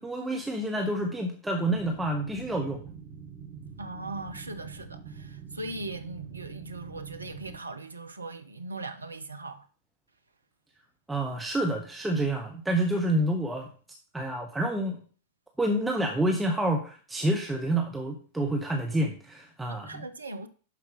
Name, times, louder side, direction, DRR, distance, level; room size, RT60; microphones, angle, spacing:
voice 1, 0.0-2.8 11.1-13.7 14.1-15.0 15.6-20.1, right 1 dB, 5° right, 1.1 m, -28 dB
sound 1, 1.7-7.6, right 6 dB, 35° right, 2.3 m, -45 dB
voice 2, 3.8-9.7 19.7-20.5, right 2 dB, 80° right, 0.7 m, -39 dB
11.5 x 4.8 x 3.7 m
figure-of-eight pair, 90°, 0 cm